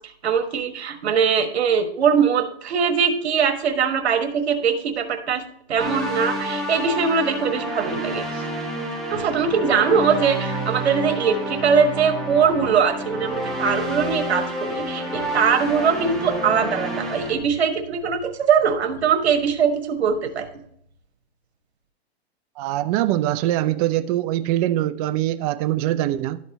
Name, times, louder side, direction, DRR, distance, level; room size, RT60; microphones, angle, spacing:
voice 1, 0.2-5.4 5.7-8.4 9.1-20.5, right 6 dB, 85° right, 1.4 m, -21 dB
sound 1, 5.8-17.3, equal, ahead, 1.4 m, -29 dB
voice 2, 22.6-26.4, right 14 dB, 35° right, 0.5 m, -23 dB
12.5 x 4.2 x 4.0 m
hypercardioid pair, 130°, 32 cm